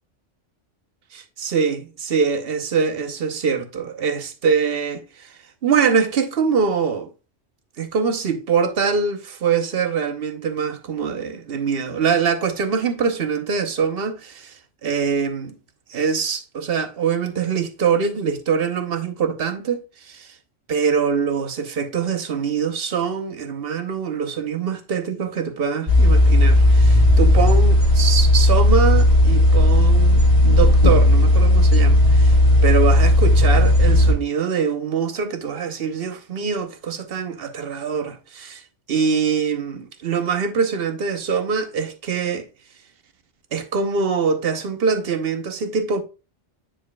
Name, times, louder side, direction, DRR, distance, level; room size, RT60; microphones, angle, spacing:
voice 1, 1.1-5.3 5.6-7.1 7.8-14.6 14.8-15.6 15.9-20.3 20.7-32.4 32.6-38.6 38.9-42.5 43.5-46.0, right 6 dB, 55° right, 1.0 m, -23 dB
sound 1, 25.9-34.1, left 1 dB, 35° right, 2.3 m, -14 dB
9.1 x 4.9 x 2.2 m
omnidirectional pair, 1.2 m